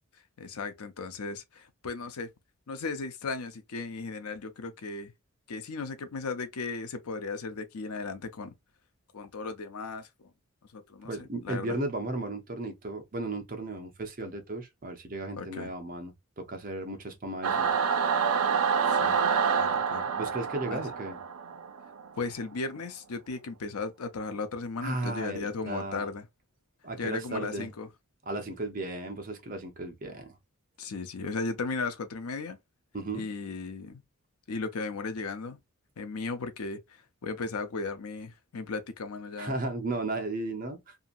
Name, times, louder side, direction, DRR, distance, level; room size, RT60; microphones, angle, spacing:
voice 1, 0.4-2.3 2.7-5.1 5.5-8.5 9.1-10.3 10.7-11.8 15.3-15.7 18.9-19.2 19.6-20.0 20.7-20.8 22.2-26.2 27.0-27.9 30.8-32.6 33.1-34.0 34.5-35.6 36.0-36.8 37.2-39.6, left 4 dB, 90° left, 0.6 m, -36 dB
voice 2, 11.0-17.7 20.1-21.2 24.8-26.1 26.8-27.7 28.2-30.4 32.9-33.2 39.4-41.0, right 2 dB, 40° right, 0.7 m, -35 dB
Singing / Musical instrument, 17.4-22.1, right 6 dB, 75° right, 0.5 m, -27 dB
2.8 x 2.5 x 2.5 m
head